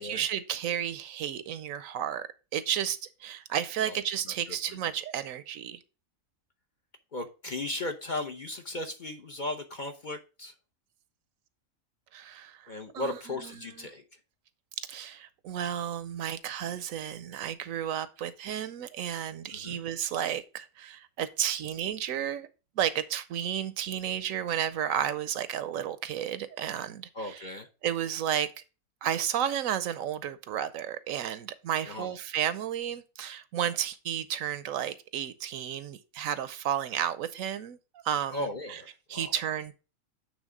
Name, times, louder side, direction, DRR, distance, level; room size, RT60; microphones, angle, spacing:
voice 1, 0.0-5.8 12.1-13.9 14.9-22.5 22.8-27.5 27.8-28.5 29.0-37.8 38.0-38.8 39.1-39.7, right 10 dB, 75° right, 1.0 m, -32 dB
voice 2, 7.1-10.5 12.7-14.0 19.5-19.8 27.1-27.7 31.8-32.2 38.3-39.3, left 2 dB, 45° left, 0.8 m, -36 dB
8.2 x 3.5 x 4.8 m
omnidirectional pair, 1.4 m